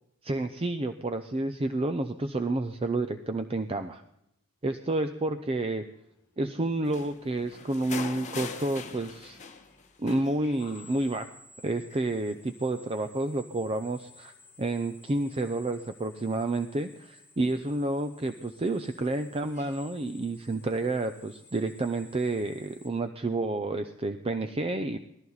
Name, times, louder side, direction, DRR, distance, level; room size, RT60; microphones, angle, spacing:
voice 1, 0.2-4.0 4.6-5.8 6.4-9.4 10.0-11.3 11.6-25.0, right 2 dB, 25° right, 9 dB, 0.6 m, -30 dB
Drill, 5.5-22.9, left 2 dB, 15° left, 4.3 m, -56 dB
sound 1, 6.9-9.8 10.1-11.1 11.9-12.0, left 5 dB, 35° left, 1.2 m, -41 dB
19.0 x 14.0 x 4.0 m, 0.80 s
head